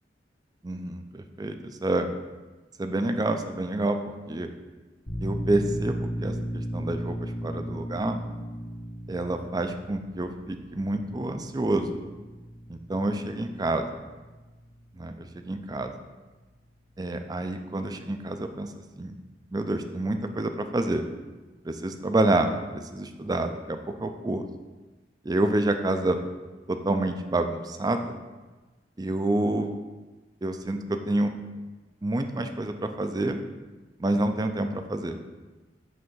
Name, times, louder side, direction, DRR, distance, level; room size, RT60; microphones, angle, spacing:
voice 1, 0.6-2.1 2.8-4.5 5.2-8.2 9.1-12.0 12.7-13.8 14.9-15.9 17.0-19.1 19.5-21.1 21.6-24.4 25.2-26.2 26.7-28.2 29.0-29.8 30.4-31.3 32.0-33.4 34.0-35.2, right 2 dB, 20° right, 7 dB, 0.4 m, -28 dB
sound 1, 5.1-16.4, equal, 80° left, 1.9 m, -36 dB
7.8 x 3.3 x 5.5 m, 1.2 s
head